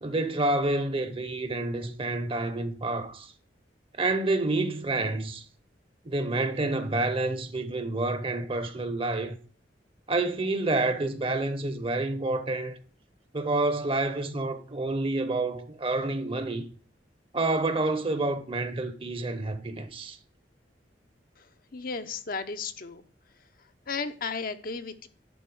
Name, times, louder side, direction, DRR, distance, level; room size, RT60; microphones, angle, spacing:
voice 1, 0.0-3.3 4.0-5.4 6.0-9.4 10.1-12.8 13.3-16.7 17.3-20.2, right 2 dB, 30° right, 1.0 m, -28 dB
voice 2, 21.4-23.0 23.9-25.1, left 4 dB, 50° left, 0.8 m, -34 dB
11.0 x 4.2 x 7.8 m
head